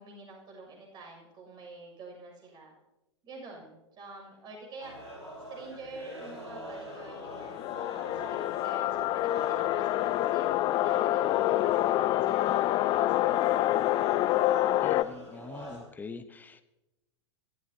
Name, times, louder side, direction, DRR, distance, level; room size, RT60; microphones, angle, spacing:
voice 1, 0.0-2.8 3.2-5.2 5.5-14.5, right 3 dB, 30° right, 1 dB, 6.7 m, -48 dB
sound 1, 4.8-15.8, equal, 85° right, 5.9 m, -44 dB
sound 2, 6.9-15.0, left 14 dB, 30° left, 0.5 m, -27 dB
voice 2, 14.8-16.6, left 4 dB, 10° left, 10 dB, 1.1 m, -44 dB
27.0 x 14.0 x 2.9 m, 0.96 s
figure-of-eight pair, 100°, 15 cm